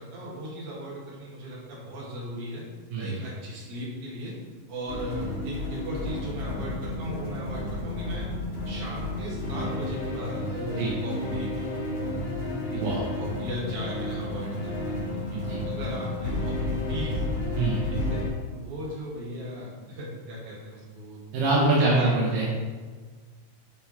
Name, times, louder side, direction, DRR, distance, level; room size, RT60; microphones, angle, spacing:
voice 1, 0.0-2.6 3.0-4.3 4.7-8.3 8.7-11.6 12.7-17.3 17.9-18.2 18.5-21.2 21.9-22.1, equal, 60° right, -6 dB, 3.5 m, -38 dB
sound 1, 4.9-18.3, left 2 dB, 60° left, 2.9 m, -31 dB
voice 2, 12.7-13.0 15.3-15.6 17.6-17.8 21.3-22.5, right 2 dB, 80° right, -4 dB, 2.8 m, -24 dB
9.4 x 4.9 x 4.3 m, 1.4 s
omnidirectional pair, 3.8 m